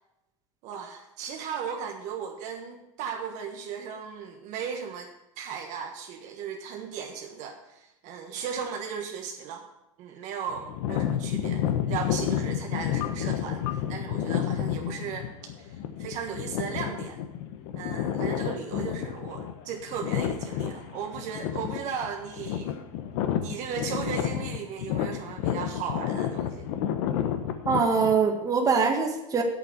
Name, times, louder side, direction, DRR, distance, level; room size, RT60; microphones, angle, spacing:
voice 1, 0.6-5.1 5.4-9.7 10.0-15.3 15.6-17.2 17.8-22.8 23.4-26.7, right 7 dB, 50° right, 3 dB, 1.4 m, -36 dB
sound 1, 10.5-28.2, left 10 dB, 65° left, 1.2 m, -30 dB
voice 2, 27.7-29.4, right 5 dB, 20° right, 2 dB, 1.8 m, -23 dB
8.4 x 7.3 x 8.3 m, 0.92 s
supercardioid pair, 130°, 16 cm